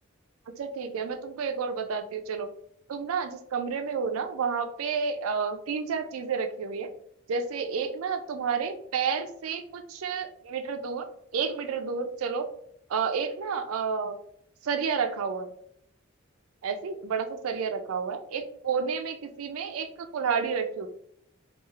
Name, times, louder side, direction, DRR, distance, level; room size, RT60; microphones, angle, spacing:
voice 1, 0.6-2.5 2.9-6.9 7.3-11.0 11.3-12.5 12.9-14.2 14.6-15.5 16.6-20.9, right 6 dB, 85° right, 7 dB, 0.4 m, -30 dB
3.0 x 2.3 x 2.4 m, 0.69 s
head